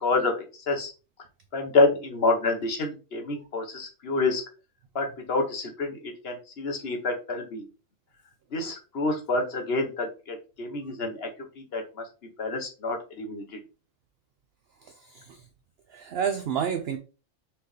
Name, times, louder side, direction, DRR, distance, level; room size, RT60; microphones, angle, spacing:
voice 1, 0.0-0.9 1.5-4.4 4.9-7.7 8.5-11.3 11.6-12.0 12.4-13.4, left 3 dB, 50° left, 1.1 m, -28 dB
voice 2, 14.8-15.4 15.9-17.0, right 7 dB, 65° right, 0.6 m, -30 dB
4.2 x 3.5 x 3.2 m
omnidirectional pair, 1.4 m